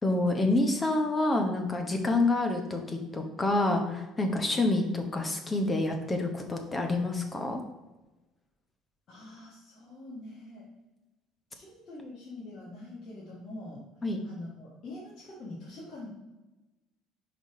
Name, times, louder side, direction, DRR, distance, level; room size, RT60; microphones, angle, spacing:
voice 1, 0.0-7.6 14.0-14.2, left 2 dB, 20° left, 4 dB, 1.0 m, -28 dB
voice 2, 9.1-10.7 11.5-13.8 14.2-16.1, left 2 dB, 45° left, -7 dB, 1.8 m, -44 dB
5.2 x 4.2 x 4.8 m, 1.1 s
cardioid pair, 125°, 0 cm